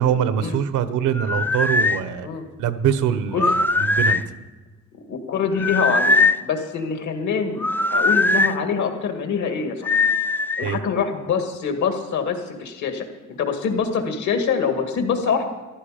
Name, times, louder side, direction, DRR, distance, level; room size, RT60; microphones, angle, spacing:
voice 1, 0.0-2.3 2.6-4.2 10.6-10.8, right 9 dB, 85° right, 13 dB, 1.0 m, -23 dB
sound 1, 1.1-2.0 3.3-4.3 5.6-6.4 7.6-8.5 9.8-10.7, left 3 dB, 5° left, 0.3 m, -20 dB
voice 2, 5.1-10.0 10.6-15.4, left 6 dB, 70° left, 5 dB, 2.0 m, -25 dB
14.5 x 11.5 x 5.1 m, 1.3 s
cardioid pair, 90°, 30 cm